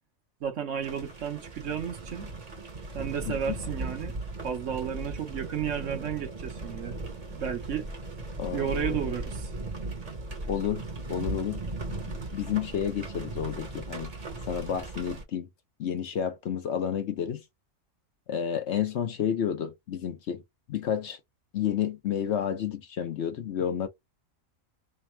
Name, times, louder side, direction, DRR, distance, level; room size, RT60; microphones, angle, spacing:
voice 1, 0.4-2.3 2.9-4.1 4.4-7.0 7.3-7.9 8.5-9.5, right 8 dB, 65° right, 1.2 m, -33 dB
sound 1, 0.8-15.2, right 2 dB, 35° right, 0.9 m, -37 dB
voice 2, 8.4-9.1 10.5-10.8 11.1-11.6 12.0-14.1 14.5-15.5 15.8-17.4 18.3-20.4 20.7-21.2 21.5-23.9, left 9 dB, 60° left, 1.0 m, -30 dB
3.4 x 2.1 x 4.3 m
omnidirectional pair, 1.4 m